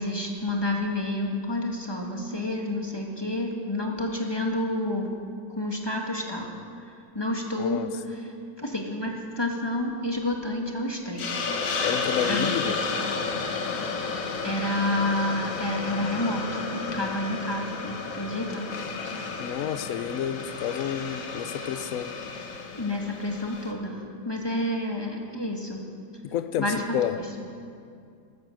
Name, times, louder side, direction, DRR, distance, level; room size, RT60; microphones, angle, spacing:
voice 1, 0.0-5.2 5.5-11.3 12.2-12.5 14.4-18.7 22.8-25.8 26.6-27.1, left 1 dB, 15° left, 1 dB, 1.2 m, -29 dB
voice 2, 7.6-7.9 11.8-12.8 19.4-22.1 26.2-27.1, left 10 dB, 65° left, 12 dB, 0.8 m, -30 dB
Hiss, 11.2-23.7, left 4 dB, 50° left, 1.4 m, -32 dB
13.0 x 12.0 x 7.6 m, 2.3 s
omnidirectional pair, 2.1 m